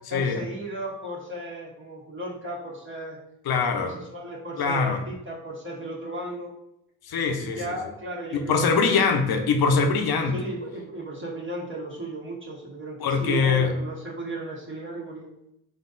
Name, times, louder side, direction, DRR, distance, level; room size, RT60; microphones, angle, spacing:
voice 1, 0.1-3.2 3.8-6.5 7.4-9.2 10.3-15.3, right 1 dB, 30° right, -4 dB, 1.4 m, -35 dB
voice 2, 3.5-3.9 4.6-5.0 7.0-7.6 8.3-10.4 13.0-13.7, left 5 dB, 65° left, 5 dB, 0.8 m, -23 dB
4.3 x 2.6 x 4.0 m, 0.79 s
supercardioid pair, 50°, 39 cm